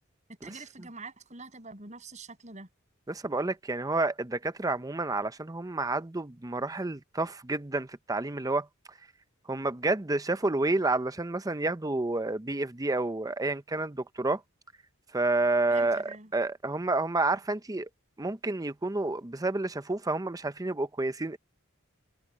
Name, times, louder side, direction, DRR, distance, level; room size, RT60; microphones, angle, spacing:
voice 1, 0.3-2.7 15.7-16.3, right 3 dB, 35° right, 7.5 m, -45 dB
voice 2, 3.1-8.7 9.5-14.4 15.1-17.9 18.2-21.4, right 2 dB, 20° right, 0.7 m, -29 dB
open air
head